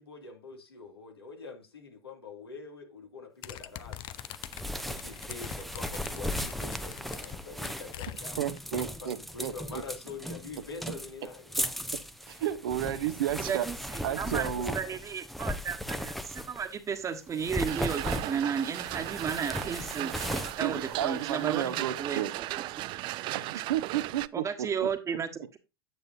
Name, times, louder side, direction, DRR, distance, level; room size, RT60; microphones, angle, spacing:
voice 1, 0.0-4.2 4.8-8.4 8.9-11.8, left 4 dB, 80° left, 2.4 m, -45 dB
sound 1, 3.4-8.6, left 13 dB, 40° left, 0.6 m, -44 dB
sound 2, 4.1-16.8 17.3-21.6, left 1 dB, ahead, 0.7 m, -37 dB
voice 2, 8.4-9.8 12.3-13.7 14.0-14.8 20.6-22.3 23.3-24.9, right 11 dB, 65° right, 0.8 m, -32 dB
voice 3, 13.5-14.5 14.7-20.2 20.6-22.5 24.3-25.6, right 7 dB, 25° right, 1.4 m, -33 dB
sound 3, 17.7-24.3, right 18 dB, 40° right, 0.4 m, -36 dB
9.4 x 7.6 x 2.6 m
figure-of-eight pair, 85°, 13 cm